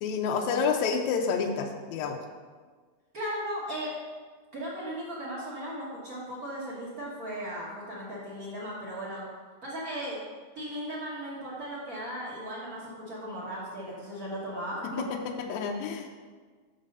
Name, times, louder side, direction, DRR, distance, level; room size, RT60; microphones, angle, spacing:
voice 1, 0.0-2.2 15.0-16.1, left 5 dB, 85° left, 3 dB, 1.7 m, -29 dB
voice 2, 3.1-3.9 4.5-9.2 9.6-10.2 10.5-15.0, equal, 55° right, -7 dB, 0.9 m, -36 dB
6.3 x 5.2 x 5.3 m, 1.5 s
omnidirectional pair, 3.8 m